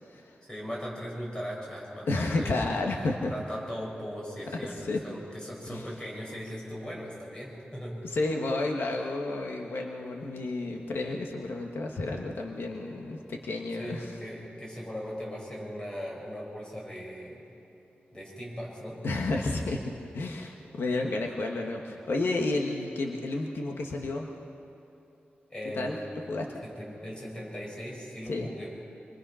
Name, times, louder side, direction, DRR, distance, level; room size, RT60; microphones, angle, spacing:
voice 1, 0.5-2.5 3.3-8.0 13.8-17.5 18.1-19.0 25.5-26.3 26.6-28.7, equal, 20° left, -3 dB, 5.7 m, -39 dB
voice 2, 2.1-3.3 4.8-5.0 5.7-5.9 8.0-14.1 19.0-24.3 25.8-26.0 26.3-26.5 28.3-28.5, left 2 dB, 90° left, 1 dB, 1.6 m, -31 dB
25.5 x 23.0 x 5.7 m, 2.9 s
wide cardioid pair, 165°, 4 cm